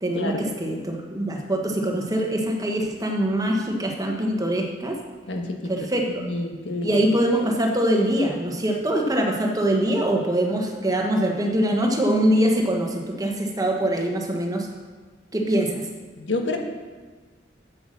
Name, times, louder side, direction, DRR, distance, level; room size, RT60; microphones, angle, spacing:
voice 1, 0.0-5.0 5.7-6.3 6.8-14.7 15.3-15.8, right 1 dB, 20° right, 1 dB, 1.2 m, -23 dB
voice 2, 5.3-5.9 6.2-7.0 16.2-16.6, left 2 dB, 85° left, 3 dB, 1.4 m, -28 dB
8.1 x 7.9 x 6.5 m, 1.4 s
head